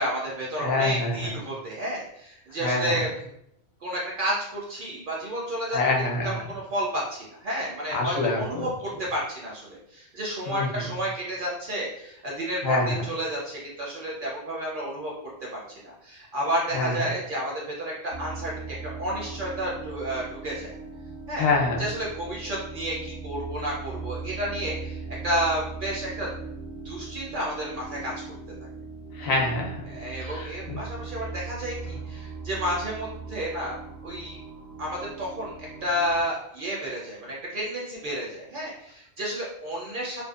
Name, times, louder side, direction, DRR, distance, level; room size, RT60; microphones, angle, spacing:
voice 1, 0.0-3.1 3.8-5.8 6.2-15.1 15.7-20.7 21.3-21.4 21.8-26.3 26.8-28.1 29.9-33.8 34.0-34.4 34.8-40.2, equal, 60° right, -4 dB, 0.6 m, -31 dB
voice 2, 0.6-1.3 2.6-3.0 5.7-6.4 7.9-8.7 10.5-10.8 12.6-13.0 16.7-17.0 21.4-21.8 29.1-29.8 30.2-30.8, left 3 dB, 60° left, 0 dB, 0.7 m, -26 dB
sound 1, 18.1-36.2, right 4 dB, 90° right, 1.0 m, -39 dB
2.6 x 2.1 x 2.3 m, 0.76 s
omnidirectional pair, 1.2 m